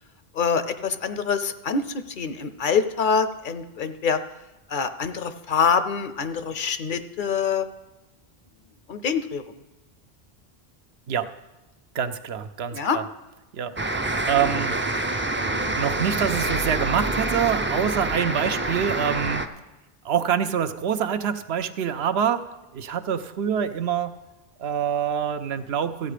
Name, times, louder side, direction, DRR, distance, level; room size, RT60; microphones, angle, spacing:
voice 1, 0.3-1.8 2.2-4.2 4.7-7.7 8.9-9.4 12.7-13.0, left 6 dB, 60° left, 11 dB, 0.7 m, -25 dB
voice 2, 11.9-13.1 13.5-13.7 14.0-14.7 15.8-19.4 20.0-24.1 24.6-26.1, right 8 dB, 80° right, 10 dB, 0.9 m, -26 dB
sound 1, 13.8-19.5, right 2 dB, 20° right, 0.3 m, -26 dB
14.5 x 8.2 x 5.0 m, 1.0 s
omnidirectional pair, 1.1 m